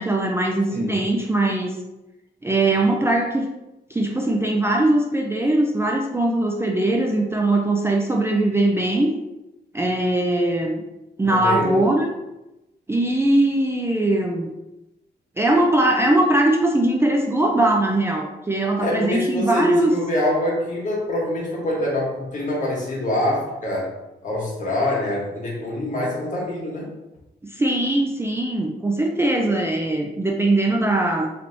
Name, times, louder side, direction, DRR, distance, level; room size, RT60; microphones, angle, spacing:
voice 1, 0.0-1.8 2.4-3.5 3.9-9.1 9.7-10.8 11.2-12.1 12.9-14.5 15.4-19.9 27.4-31.3, right 1 dB, 15° right, 0 dB, 0.4 m, -20 dB
voice 2, 0.7-1.0 11.2-11.9 18.8-23.9 24.2-26.9, left 1 dB, 45° left, -3 dB, 1.4 m, -25 dB
3.3 x 3.0 x 3.9 m, 0.96 s
wide cardioid pair, 135°, 17 cm